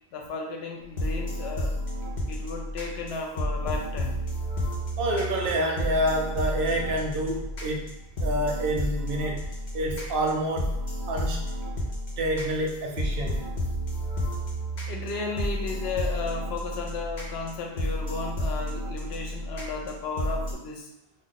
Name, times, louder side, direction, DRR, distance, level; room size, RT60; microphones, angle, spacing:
voice 1, 0.1-1.8 2.3-4.2 14.9-20.9, left 3 dB, 75° left, 1 dB, 0.8 m, -34 dB
sound 1, 0.8-20.5, equal, 45° left, 0.8 m, -31 dB
voice 2, 5.0-7.9 8.2-9.4 9.7-10.8 11.1-11.5 12.2-13.5, right 1 dB, 65° right, 1 dB, 0.7 m, -28 dB
2.5 x 2.0 x 3.8 m, 0.81 s
omnidirectional pair, 1.1 m